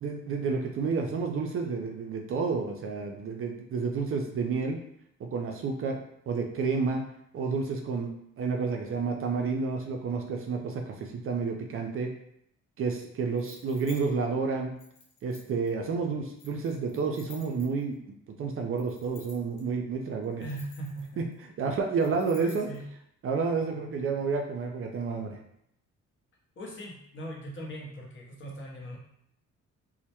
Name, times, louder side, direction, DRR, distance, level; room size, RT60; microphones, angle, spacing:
voice 1, 0.0-4.8 5.2-6.0 6.3-7.0 7.3-8.1 8.4-12.1 12.8-14.7 15.2-18.0 18.4-20.4 21.6-22.7 23.2-25.4, right 4 dB, 45° right, 2 dB, 0.4 m, -30 dB
sound 1, 13.4-14.0 14.8-15.7 16.4-17.9 18.8-19.6 20.2-21.3 22.0-22.8, left 5 dB, 90° left, 0.6 m, -53 dB
voice 2, 20.4-21.2 22.4-22.9 26.6-29.0, right 1 dB, 40° left, -2 dB, 0.7 m, -40 dB
2.1 x 2.1 x 2.8 m, 0.73 s
cardioid pair, 90°, 30 cm